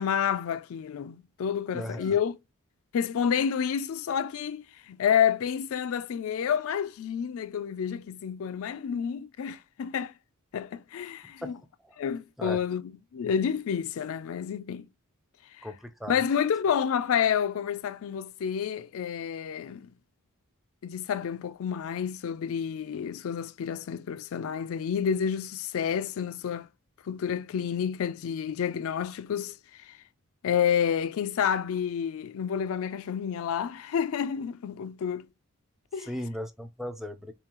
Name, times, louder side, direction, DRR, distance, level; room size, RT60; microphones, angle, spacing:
voice 1, 0.0-2.4 2.9-10.1 10.5-11.6 12.0-12.8 13.1-14.9 15.6-15.7 16.1-19.9 20.8-26.7 27.0-30.0 30.4-35.3 35.9-36.1, left 8 dB, 65° left, 0.3 m, -29 dB
voice 2, 1.7-2.2 11.4-11.5 11.8-12.0 12.4-12.6 15.6-16.2 36.0-37.3, equal, ahead, 0.4 m, -37 dB
3.7 x 3.1 x 3.0 m
head